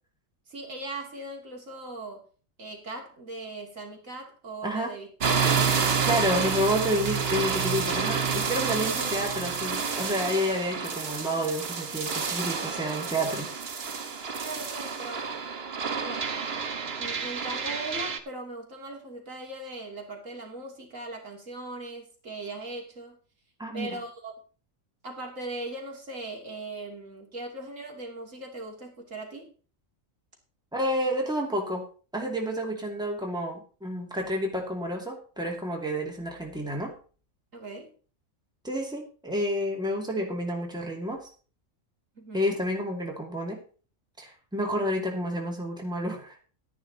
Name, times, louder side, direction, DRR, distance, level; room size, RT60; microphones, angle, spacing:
voice 1, 0.5-2.2 2.6-5.5 6.4-6.6 14.4-15.3 16.0-16.5 17.0-23.2 23.7-24.3 25.0-29.5 37.5-37.9 42.2-42.6, right 2 dB, 70° right, 0 dB, 3.1 m, -39 dB
voice 2, 4.6-4.9 6.0-13.6 23.6-24.0 30.7-31.8 32.1-36.9 38.6-41.3 42.3-43.6 44.2-46.4, equal, 5° right, 0 dB, 2.4 m, -30 dB
sound 1, 5.2-18.2, right 6 dB, 50° right, 1.3 m, -29 dB
12.0 x 10.5 x 4.0 m, 0.39 s
omnidirectional pair, 1.4 m